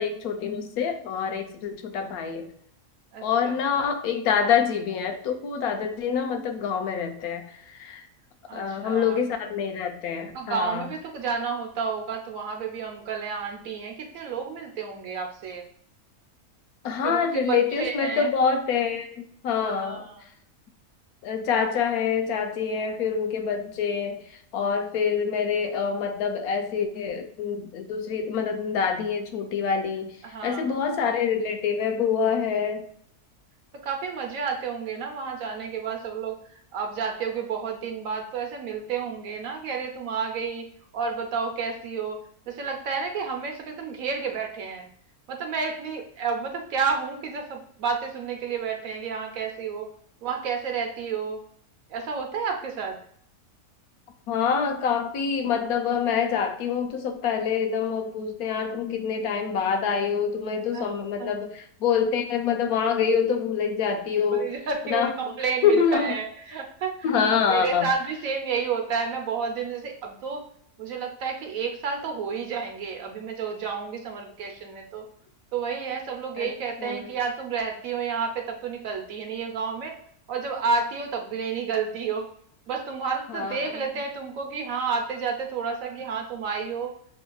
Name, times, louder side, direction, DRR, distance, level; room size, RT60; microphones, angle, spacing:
voice 1, 0.0-2.5 3.2-8.1 8.5-10.9 16.8-20.1 21.2-24.2 24.5-30.1 30.4-32.8 54.3-64.5 64.8-65.1 65.6-66.1 67.0-67.9 76.4-76.5 76.8-77.1 83.3-83.8, left 6 dB, 80° left, 6 dB, 1.1 m, -26 dB
voice 2, 3.1-3.6 8.5-9.2 10.3-15.6 17.0-18.3 19.8-20.2 30.2-30.8 33.8-36.3 36.7-40.6 40.9-42.2 42.5-44.9 45.3-49.9 50.2-51.4 51.9-52.9 60.7-60.9 61.2-61.3 64.3-67.2 67.5-70.4 70.8-75.0 75.5-80.0 80.3-82.2 82.7-86.9, right 5 dB, 65° right, 3 dB, 1.2 m, -30 dB
6.4 x 2.8 x 2.2 m, 0.64 s
omnidirectional pair, 1.6 m